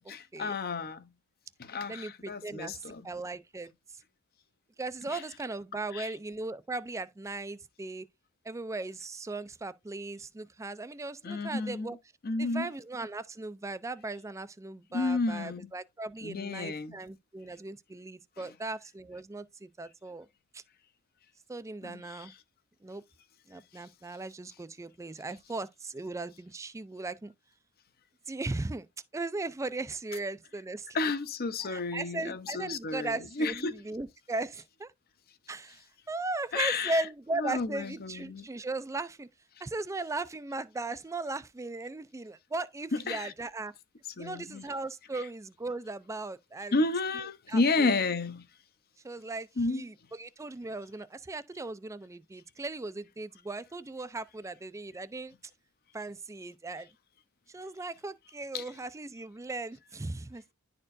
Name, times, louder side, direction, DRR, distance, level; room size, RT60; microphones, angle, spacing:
voice 1, 0.1-1.1 1.6-3.1 5.1-5.2 5.9-6.1 11.2-11.9 12.2-12.7 14.9-15.7 16.2-17.0 21.8-22.2 30.9-33.8 36.5-37.0 37.4-38.4 42.9-43.3 44.2-44.7 46.7-48.4 49.6-49.8 58.5-58.6, left 3 dB, 45° left, 0.7 m, -31 dB
voice 2, 1.9-4.0 4.8-8.1 8.4-12.0 12.4-20.3 20.5-20.6 21.5-22.3 22.8-23.0 23.5-27.3 28.3-28.9 29.1-30.9 31.6-34.9 35.5-39.3 39.6-43.7 44.2-46.8 47.5-47.9 49.0-55.3 55.9-56.9 57.5-60.5, right 2 dB, 15° right, 0.4 m, -38 dB
11.0 x 4.4 x 2.6 m
head